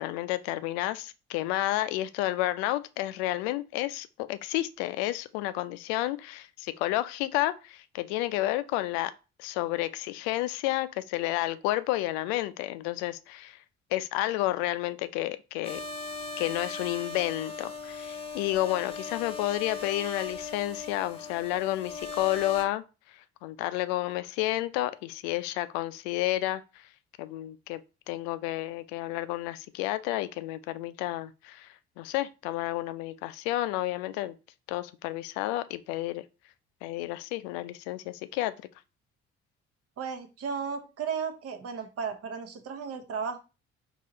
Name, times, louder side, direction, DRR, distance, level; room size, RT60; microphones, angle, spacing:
voice 1, 0.0-9.1 9.4-13.6 13.9-15.8 16.4-22.8 23.4-26.6 27.2-34.3 34.7-36.2 36.8-38.5, left 16 dB, 65° left, 0.5 m, -31 dB
sound 1, 15.6-22.6, left 4 dB, 15° left, 1.0 m, -38 dB
voice 2, 40.0-43.4, right 6 dB, 45° right, 0.9 m, -34 dB
4.7 x 2.9 x 2.8 m
figure-of-eight pair, 45°, 34 cm